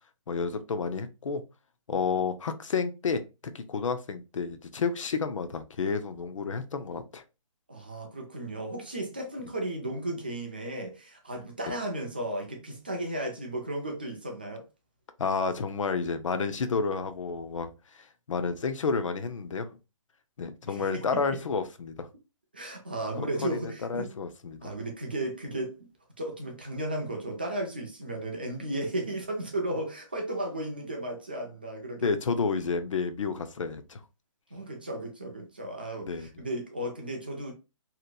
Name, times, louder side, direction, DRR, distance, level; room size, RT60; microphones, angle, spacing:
voice 1, 0.3-1.4 1.9-3.2 3.5-7.2 15.2-19.7 20.4-22.1 23.2-23.5 23.9-24.7 32.0-34.0 36.0-36.3, left 5 dB, 65° left, 0.5 m, -30 dB
voice 2, 7.7-14.6 20.7-21.4 22.5-24.1 24.6-25.8 26.2-32.1 34.5-37.5, right 1 dB, 20° right, 0.3 m, -34 dB
2.8 x 2.2 x 2.5 m
hypercardioid pair, 170°, 17 cm